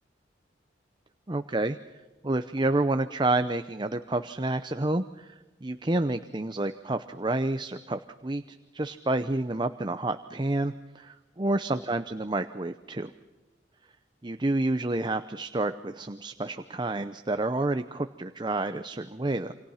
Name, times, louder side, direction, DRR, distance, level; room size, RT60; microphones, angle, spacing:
voice 1, 1.3-1.8 2.2-13.1 14.2-19.5, right 2 dB, 25° right, 10 dB, 0.7 m, -29 dB
28.5 x 26.0 x 5.7 m, 1.2 s
head